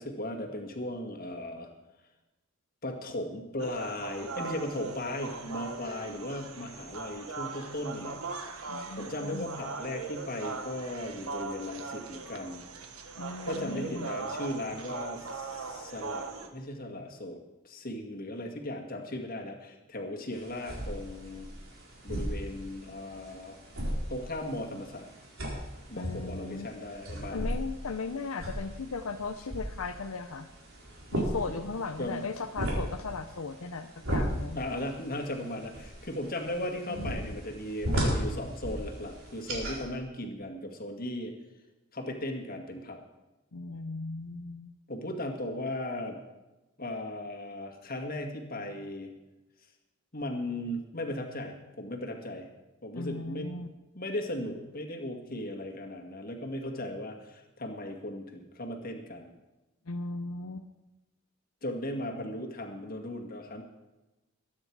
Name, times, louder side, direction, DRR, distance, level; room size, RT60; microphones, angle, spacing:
voice 1, 0.0-1.7 2.8-8.2 9.0-12.6 13.5-16.3 16.5-21.5 22.0-23.6 24.1-25.1 25.9-27.5 32.0-32.2 34.5-41.3 41.9-43.0 44.9-46.2 46.8-49.1 50.1-52.5 52.8-53.6 53.9-59.3 61.6-63.6, left 1 dB, 40° left, 2 dB, 2.0 m, -37 dB
sound 1, 3.6-16.5, right 4 dB, 80° right, 1.5 m, -40 dB
voice 2, 8.7-9.5 13.2-14.1 25.9-26.7 27.3-30.5 31.1-34.6 36.9-37.4 43.5-44.7 52.9-53.7 59.9-60.7, left 4 dB, 80° left, 6 dB, 0.7 m, -37 dB
sound 2, 20.3-39.8, equal, 65° right, 4.3 m, -36 dB
22.0 x 9.6 x 4.8 m, 1.0 s
head